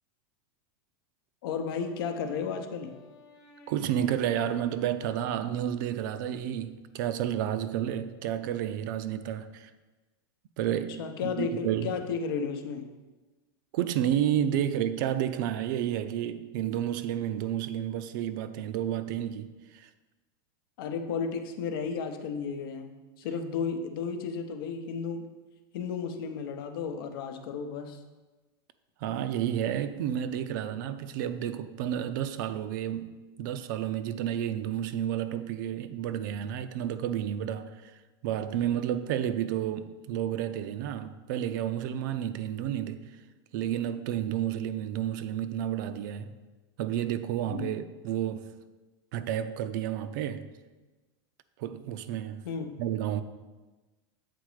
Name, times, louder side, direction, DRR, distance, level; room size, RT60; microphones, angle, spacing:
voice 1, 1.4-2.9 11.0-12.9 14.5-14.6 20.8-25.3 25.7-28.0 47.5-47.8 52.4-52.8, left 6 dB, 65° left, 0.7 m, -33 dB
Wind instrument woodwind instrument, 1.5-6.2, left 5 dB, 25° left, 0.9 m, -55 dB
voice 2, 3.7-9.7 10.6-11.9 13.7-19.9 29.0-43.2 43.5-46.3 46.8-48.5 49.1-50.6 51.6-52.5 52.8-53.2, right 10 dB, 50° right, 0.4 m, -31 dB
7.8 x 4.0 x 4.8 m
supercardioid pair, 160°, 13 cm